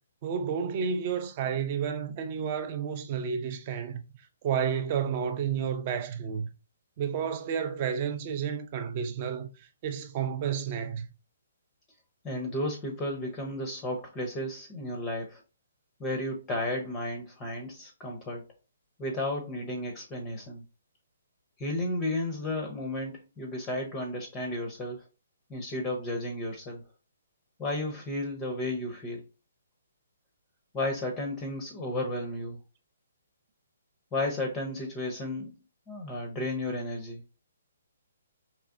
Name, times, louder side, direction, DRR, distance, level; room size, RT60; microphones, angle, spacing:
voice 1, 0.2-4.0 4.4-6.5 7.0-9.5 9.8-11.1, right 7 dB, 25° right, 0.5 m, -31 dB
voice 2, 12.2-15.4 16.0-18.5 19.0-20.6 21.6-25.0 25.5-26.8 27.6-29.2 30.7-32.6 34.1-35.5 35.9-37.2, left 1 dB, 15° left, 0.6 m, -33 dB
4.6 x 3.1 x 2.5 m
hypercardioid pair, 170°, 0 cm